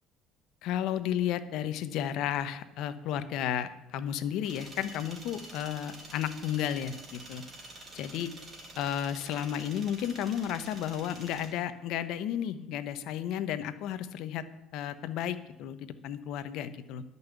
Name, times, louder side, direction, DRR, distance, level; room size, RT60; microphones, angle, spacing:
voice 1, 0.6-7.4 7.9-8.3 8.8-14.4 14.7-17.0, left 10 dB, 70° left, 12 dB, 0.8 m, -33 dB
sound 1, 4.4-11.5, right 2 dB, 35° right, 3.3 m, -48 dB
11.0 x 5.5 x 8.0 m, 0.94 s
cardioid pair, 110°, 0 cm